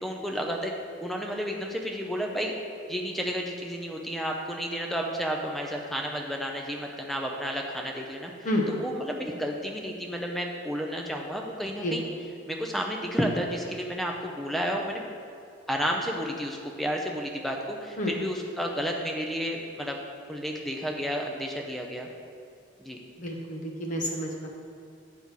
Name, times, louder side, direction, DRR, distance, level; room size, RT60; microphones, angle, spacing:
voice 1, 0.0-0.7 1.0-2.5 2.9-8.3 8.7-12.0 12.5-15.0 15.7-20.0 20.3-22.1 22.8-23.0, equal, ahead, 0 dB, 0.5 m, -31 dB
voice 2, 23.2-24.5, left 1 dB, 40° left, -1 dB, 0.8 m, -29 dB
7.5 x 3.6 x 5.7 m, 2.5 s
head